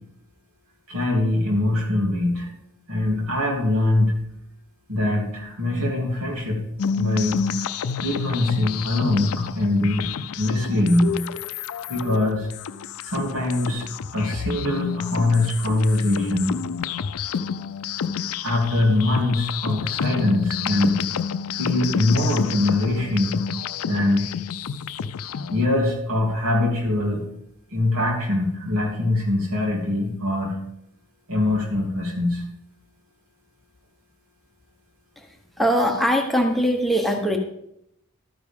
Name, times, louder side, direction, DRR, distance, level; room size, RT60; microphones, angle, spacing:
voice 1, 0.9-2.5 2.9-4.2 4.9-6.7 7.0-7.5 8.0-11.2 11.9-12.5 13.0-16.6 18.4-21.0 21.5-23.5 23.9-24.4 25.5-27.3 27.7-30.6 31.3-32.4, left 2 dB, 80° right, -1 dB, 3.1 m, -23 dB
sound 1, 6.8-25.7, left 6 dB, 85° left, 0.5 m, -29 dB
voice 2, 35.2-37.4, equal, ahead, 2 dB, 1.0 m, -22 dB
12.5 x 9.5 x 3.6 m, 0.77 s
head